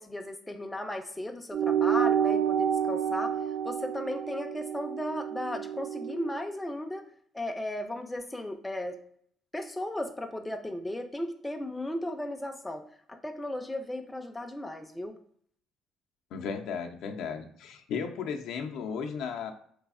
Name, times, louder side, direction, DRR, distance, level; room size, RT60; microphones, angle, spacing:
voice 1, 0.0-3.4 3.6-7.0 7.3-9.0 9.5-15.2, left 1 dB, 10° left, 6 dB, 0.3 m, -36 dB
sound 1, 1.5-6.3, right 8 dB, 70° right, 0.4 m, -29 dB
voice 2, 16.3-19.5, left 6 dB, 75° left, 5 dB, 0.4 m, -35 dB
3.3 x 3.0 x 2.4 m, 0.62 s
cardioid pair, 110°, 0 cm